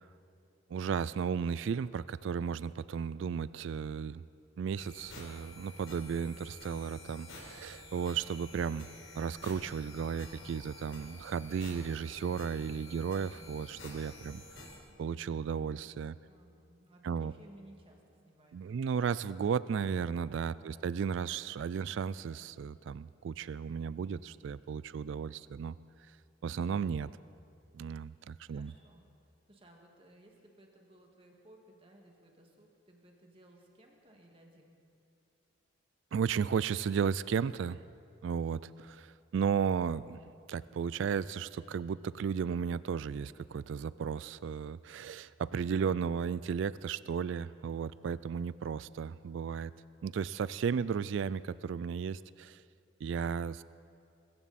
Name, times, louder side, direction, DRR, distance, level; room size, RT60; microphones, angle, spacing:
voice 1, 0.7-4.2 4.6-8.9 9.2-14.4 15.0-16.2 17.0-17.3 18.5-25.7 26.4-27.1 27.7-28.7 36.1-37.8 38.2-40.2 40.5-49.7 50.0-52.6 53.0-53.6, right 6 dB, 65° right, 18 dB, 0.3 m, -34 dB
sound 1, 4.8-14.8, left 1 dB, 65° left, 3.8 m, -50 dB
voice 2, 16.3-19.1 20.5-21.0 28.5-29.1 29.5-34.8, right 1 dB, 25° right, 1 dB, 1.9 m, -59 dB
23.5 x 14.5 x 4.2 m, 2.7 s
head